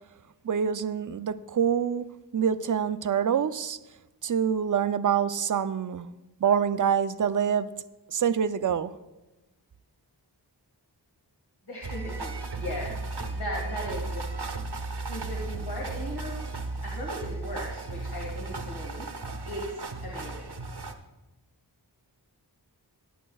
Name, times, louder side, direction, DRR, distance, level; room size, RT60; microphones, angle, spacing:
voice 1, 0.4-2.0 2.3-3.8 4.2-6.1 6.4-7.7 8.1-8.9, right 8 dB, 50° right, 12 dB, 0.5 m, -26 dB
voice 2, 11.7-12.9 13.3-14.3 15.1-16.4 16.8-19.1 19.4-20.5, equal, 65° left, -4 dB, 2.1 m, -37 dB
sound 1, 11.8-20.9, right 3 dB, 70° right, 0.9 m, -35 dB
17.0 x 10.0 x 2.3 m, 1.0 s
wide cardioid pair, 40°, 42 cm